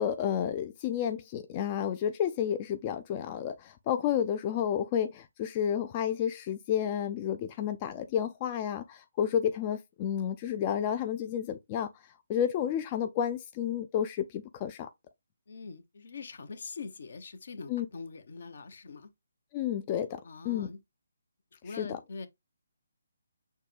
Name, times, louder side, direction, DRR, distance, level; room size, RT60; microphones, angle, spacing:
voice 1, 0.0-11.9 12.3-14.9 17.7-17.9 19.5-20.7 21.7-22.0, left 9 dB, 25° left, 0.4 m, -31 dB
voice 2, 15.5-19.1 20.2-20.8 21.5-22.3, left 4 dB, 60° left, 0.8 m, -43 dB
6.5 x 2.2 x 3.2 m
hypercardioid pair, 155°, 0 cm